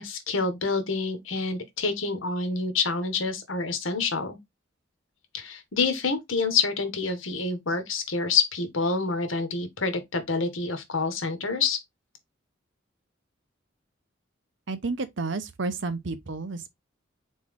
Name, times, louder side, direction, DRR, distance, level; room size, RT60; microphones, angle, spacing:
voice 1, 0.0-4.4 5.3-11.8, left 4 dB, 85° left, 1.3 m, -27 dB
voice 2, 14.7-16.7, right 3 dB, 65° right, 0.8 m, -31 dB
4.2 x 3.6 x 3.5 m
head